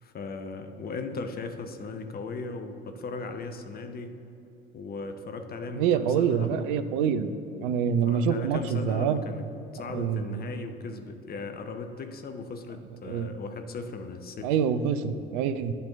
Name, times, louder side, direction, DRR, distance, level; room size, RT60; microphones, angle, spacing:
voice 1, 0.0-4.2 4.7-6.6 8.0-9.5 9.7-14.5, left 3 dB, 30° left, 7 dB, 0.7 m, -37 dB
voice 2, 5.8-7.3 7.6-9.2 9.9-10.5 13.1-13.3 14.4-15.7, right 7 dB, 60° right, 11 dB, 0.5 m, -26 dB
10.0 x 4.4 x 6.7 m, 2.7 s
figure-of-eight pair, 55°, 30 cm